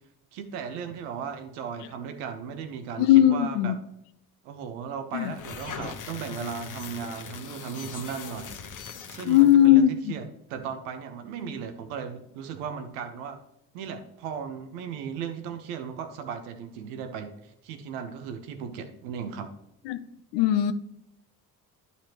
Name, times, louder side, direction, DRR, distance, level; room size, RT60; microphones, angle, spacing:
voice 1, 0.3-3.7 4.4-8.6 9.1-13.4 13.7-19.5, right 7 dB, 85° right, 1.1 m, -36 dB
voice 2, 3.0-3.7 5.1-5.3 9.2-10.1 19.9-20.0 20.3-20.7, left 11 dB, 75° left, 0.8 m, -19 dB
sound 1, 5.2-9.7, left 6 dB, 45° left, 1.2 m, -40 dB
11.5 x 5.7 x 3.0 m
hypercardioid pair, 55°, 43 cm